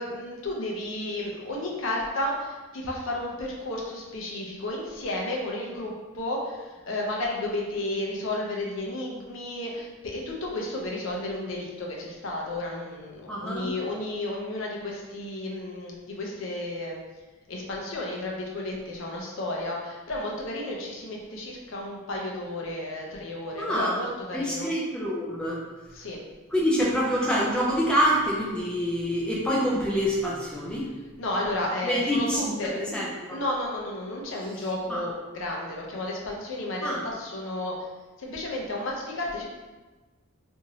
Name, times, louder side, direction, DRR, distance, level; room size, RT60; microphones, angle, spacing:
voice 1, 0.0-17.0 17.5-24.7 25.9-26.2 31.2-32.7 33.3-37.7 38.2-39.5, left 1 dB, 60° left, -2 dB, 0.6 m, -32 dB
voice 2, 13.3-13.7 23.6-24.1 24.3-25.6 26.5-30.9 31.8-32.5 32.9-33.4 34.9-35.0 36.8-37.0, equal, 5° left, -5 dB, 0.5 m, -26 dB
2.9 x 2.6 x 2.7 m, 1.2 s
head